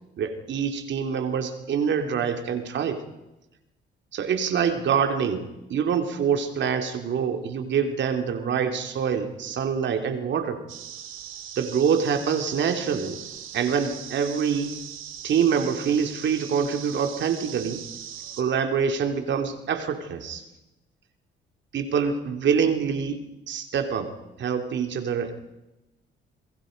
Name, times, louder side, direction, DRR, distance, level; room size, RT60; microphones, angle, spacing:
voice 1, 0.2-3.0 4.1-10.6 11.5-13.2 13.5-14.7 15.2-17.8 18.4-20.4 21.7-23.2 23.5-24.1 24.4-25.3, right 7 dB, 65° right, 7 dB, 3.0 m, -25 dB
sound 1, 10.7-18.4, right 9 dB, 85° right, 2.7 m, -40 dB
29.0 x 21.5 x 5.3 m, 0.98 s
cardioid pair, 90°, 20 cm